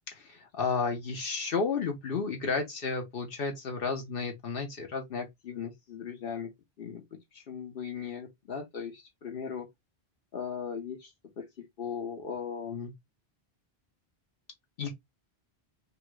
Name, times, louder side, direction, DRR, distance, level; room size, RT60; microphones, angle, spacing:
voice 1, 0.1-6.5 6.8-7.0 7.3-9.7 10.3-11.1 11.4-11.5 11.8-12.9 14.8-14.9, left 5 dB, 65° left, 0.9 m, -34 dB
2.9 x 2.3 x 2.9 m
omnidirectional pair, 1.1 m